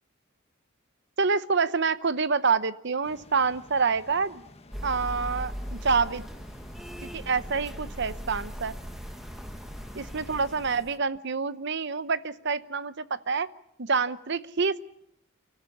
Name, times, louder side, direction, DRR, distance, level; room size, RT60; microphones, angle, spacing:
voice 1, 1.2-4.4 4.8-6.2 7.0-8.7 9.9-13.5 13.8-14.8, right 5 dB, 55° right, 15 dB, 0.8 m, -27 dB
sound 1, 3.0-10.9, left 1 dB, 30° left, 1.7 m, -52 dB
sound 2, 4.7-11.0, equal, ahead, 1.0 m, -39 dB
30.0 x 14.0 x 8.4 m, 0.77 s
head